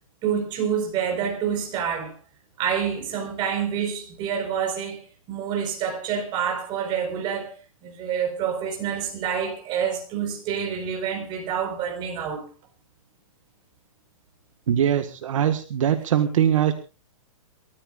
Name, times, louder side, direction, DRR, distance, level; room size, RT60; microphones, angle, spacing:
voice 1, 0.2-2.1 2.6-5.0 5.3-7.5 7.8-12.4, right 8 dB, 25° right, 4.8 m, -27 dB
voice 2, 14.7-16.7, right 9 dB, 65° right, 1.7 m, -21 dB
29.5 x 13.5 x 2.5 m
hypercardioid pair, 160°, 18 cm